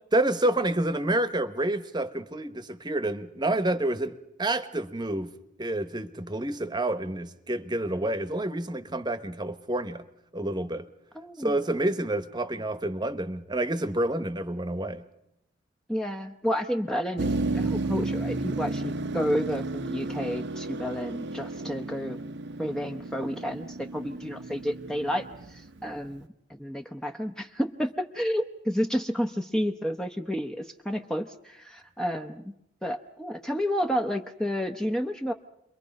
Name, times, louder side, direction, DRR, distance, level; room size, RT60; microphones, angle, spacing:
voice 1, 0.1-5.3 5.6-10.1 10.3-10.9 11.4-15.0, right 1 dB, 25° right, 1.1 m, -28 dB
voice 2, 11.1-11.6 15.9-22.2 22.6-32.5 32.8-35.3, equal, 5° left, 0.8 m, -31 dB
Motor vehicle (road), 17.2-26.2, right 2 dB, 60° right, 0.8 m, -33 dB
29.5 x 23.0 x 5.3 m
head